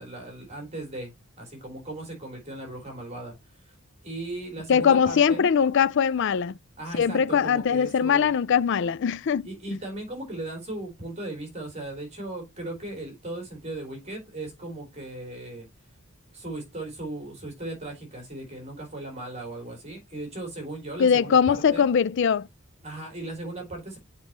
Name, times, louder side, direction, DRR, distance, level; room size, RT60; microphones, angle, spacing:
voice 1, 0.0-3.8 4.0-5.5 6.8-8.4 9.4-15.7 16.3-21.9 22.8-24.0, right 2 dB, 30° right, 3.5 m, -37 dB
voice 2, 4.7-6.6 6.9-9.5 21.0-22.5, left 7 dB, 55° left, 0.4 m, -21 dB
7.3 x 5.2 x 2.9 m
head